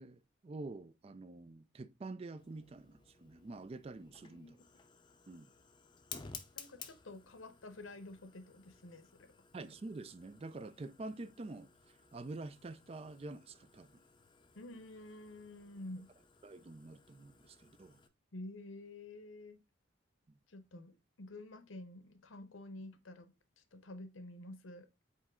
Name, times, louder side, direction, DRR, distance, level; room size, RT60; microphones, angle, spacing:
voice 1, 0.0-4.6 5.3-5.5 9.5-14.0 16.4-18.0, right 2 dB, 30° right, 0.4 m, -47 dB
Fire, 2.4-18.1, left 6 dB, 25° left, 0.6 m, -56 dB
voice 2, 4.2-4.7 6.6-9.3 14.5-16.1 18.3-19.6 20.5-24.9, left 2 dB, 80° left, 0.9 m, -50 dB
8.0 x 3.2 x 3.6 m
head